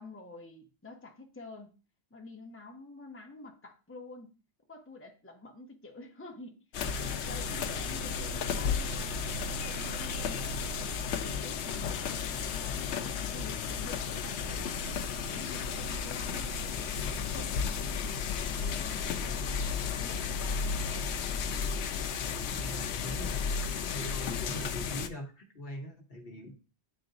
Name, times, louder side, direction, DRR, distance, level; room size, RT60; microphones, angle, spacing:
voice 1, 0.0-1.7 2.1-4.4 4.7-6.6 7.0-9.2 9.5-10.5 10.8-14.8 15.3-18.0 18.6-20.9, left 2 dB, 10° left, 2 dB, 0.9 m, -48 dB
sound 1, 6.7-25.1, left 6 dB, 75° left, 0.9 m, -33 dB
voice 2, 19.2-19.6 22.5-23.5 23.9-26.5, equal, 55° left, 2 dB, 1.3 m, -42 dB
10.5 x 3.8 x 2.5 m, 0.34 s
omnidirectional pair, 1.2 m